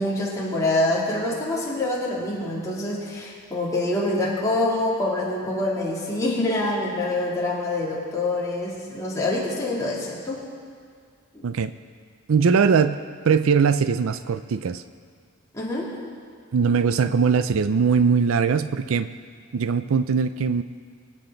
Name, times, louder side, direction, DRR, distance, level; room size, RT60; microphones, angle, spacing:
voice 1, 0.0-10.4 11.3-11.5 15.5-15.9, left 2 dB, 15° left, -7 dB, 2.9 m, -25 dB
voice 2, 12.3-13.0 13.3-14.8 16.5-19.1 19.5-20.6, right 5 dB, 70° right, 13 dB, 0.4 m, -21 dB
25.0 x 8.6 x 3.9 m, 2.1 s
head